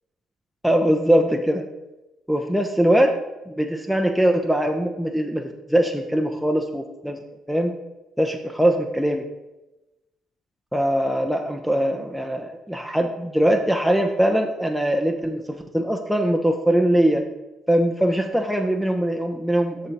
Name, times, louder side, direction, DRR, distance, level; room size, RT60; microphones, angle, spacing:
voice 1, 0.6-1.6 2.3-3.1 3.5-7.2 7.5-7.7 8.2-9.2 10.7-17.2 17.7-19.9, right 1 dB, ahead, 4 dB, 0.8 m, -21 dB
6.9 x 6.5 x 4.1 m, 1.0 s
hypercardioid pair, 55°, 0 cm